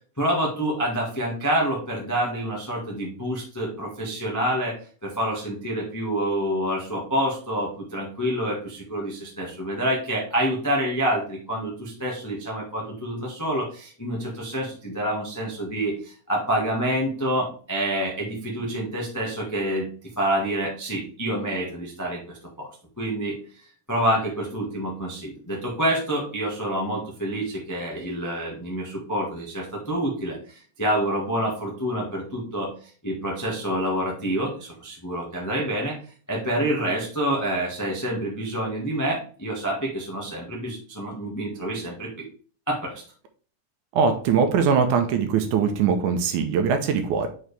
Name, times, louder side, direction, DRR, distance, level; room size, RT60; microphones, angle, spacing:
voice 1, 0.2-4.7 5.0-19.9 20.2-22.7 23.0-32.7 33.0-35.9 36.3-42.3 42.7-43.0, right 1 dB, 20° left, -3 dB, 0.5 m, -27 dB
voice 2, 43.9-47.3, right 6 dB, 75° right, 6 dB, 2.2 m, -21 dB
6.1 x 4.7 x 3.3 m, 0.43 s
omnidirectional pair, 3.6 m